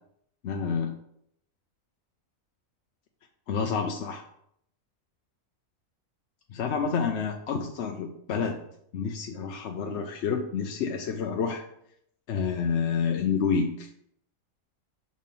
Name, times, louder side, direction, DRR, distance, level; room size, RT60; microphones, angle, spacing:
voice 1, 0.4-0.9 3.5-4.2 6.5-8.6 8.9-11.7 12.3-13.9, left 6 dB, 60° left, 3 dB, 0.8 m, -29 dB
6.1 x 4.2 x 5.4 m, 0.71 s
omnidirectional pair, 1.6 m